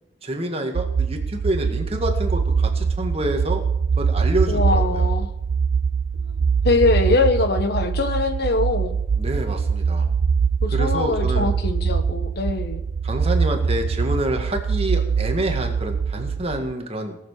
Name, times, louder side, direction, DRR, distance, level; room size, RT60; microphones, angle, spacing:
voice 1, 0.2-3.6 4.0-5.1 9.2-10.0 10.7-11.5 13.0-17.2, right 1 dB, 35° right, 3 dB, 2.0 m, -27 dB
sound 1, 0.7-16.7, right 5 dB, 85° right, 0.4 m, -23 dB
voice 2, 4.5-5.3 6.3-6.4 6.6-9.0 10.6-12.8, left 3 dB, 60° left, 8 dB, 1.3 m, -22 dB
18.5 x 7.2 x 6.5 m, 0.85 s
head